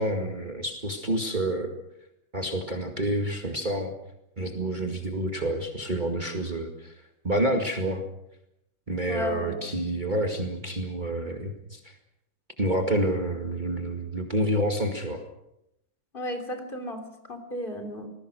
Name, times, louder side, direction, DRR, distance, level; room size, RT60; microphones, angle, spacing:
voice 1, 0.0-1.7 2.3-3.9 4.4-6.9 7.2-8.0 8.9-11.9 12.6-15.2, right 1 dB, 25° right, 3 dB, 2.2 m, -28 dB
voice 2, 9.1-9.7 16.1-18.1, left 1 dB, 25° left, 5 dB, 3.7 m, -34 dB
27.5 x 20.5 x 6.4 m, 0.82 s
omnidirectional pair, 2.1 m